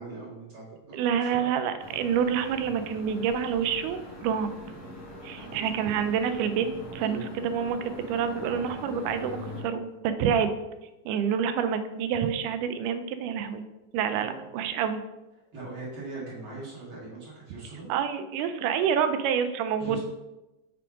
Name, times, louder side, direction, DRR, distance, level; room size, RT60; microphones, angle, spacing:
voice 1, 0.0-1.5 5.4-5.5 5.8-5.9 7.0-7.3 14.1-14.4 15.5-17.9 19.8-20.0, right 3 dB, 45° right, -6 dB, 2.5 m, -40 dB
voice 2, 0.9-4.5 5.2-6.7 6.9-10.5 11.1-13.6 13.9-15.0 17.9-20.0, right 7 dB, 85° right, 9 dB, 2.1 m, -27 dB
sound 1, 1.8-9.6, equal, 45° left, 1.0 m, -42 dB
5.9 x 3.4 x 4.9 m, 1.0 s
omnidirectional pair, 3.6 m